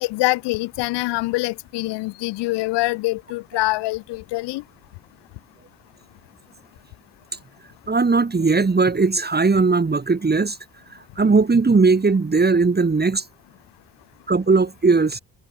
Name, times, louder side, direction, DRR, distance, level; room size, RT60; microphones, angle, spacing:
voice 1, 0.0-4.6, left 21 dB, 80° left, 1.3 m, -24 dB
voice 2, 7.9-10.6 11.2-13.2 14.3-15.2, right 4 dB, 25° right, 1.9 m, -18 dB
supercardioid pair, 55°, 41 cm